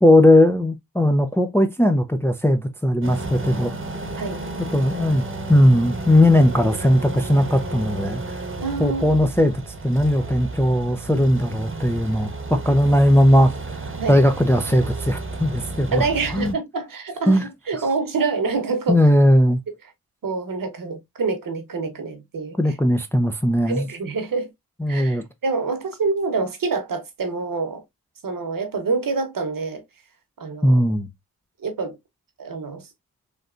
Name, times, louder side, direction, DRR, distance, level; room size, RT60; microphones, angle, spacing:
voice 1, 0.0-3.7 4.7-5.2 5.5-8.2 8.8-16.0 16.3-16.5 17.3-17.4 17.7-17.8 18.9-19.6 22.6-23.9 24.8-25.3 30.6-31.1, left 1 dB, 5° left, 0.4 m, -18 dB
sound 1, 3.0-16.5, right 2 dB, 35° right, 0.9 m, -32 dB
voice 2, 8.6-9.0 14.0-14.2 15.9-19.0 20.2-22.6 23.7-24.5 24.9-27.8 28.2-29.8 30.4-30.8 31.6-32.0 32.4-32.9, right 4 dB, 60° right, 1.0 m, -26 dB
3.4 x 2.6 x 2.4 m
cardioid pair, 55°, 37 cm